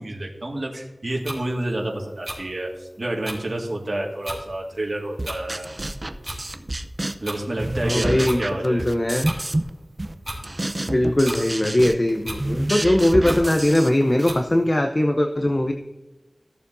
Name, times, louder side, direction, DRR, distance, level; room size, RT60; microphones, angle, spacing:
voice 1, 0.0-5.7 7.2-9.0, right 1 dB, 55° right, -1 dB, 1.9 m, -29 dB
sound 1, 1.2-1.4 2.2-2.4 3.2-3.4 4.2-4.4 5.2-5.4 6.2-6.4 7.2-7.4 8.2-8.4 9.2-9.4 10.2-10.4 11.2-11.4 12.2-12.4 13.2-13.4 14.2-14.4, right 1 dB, 15° right, 3.2 m, -32 dB
sound 2, 5.2-7.3 7.6-9.7 10.0-14.3, right 1 dB, 40° right, 0.7 m, -29 dB
voice 2, 7.8-9.3 10.8-15.7, left 1 dB, 35° left, 4 dB, 0.8 m, -20 dB
15.5 x 7.0 x 2.7 m, 1.0 s
wide cardioid pair, 55°, 0 cm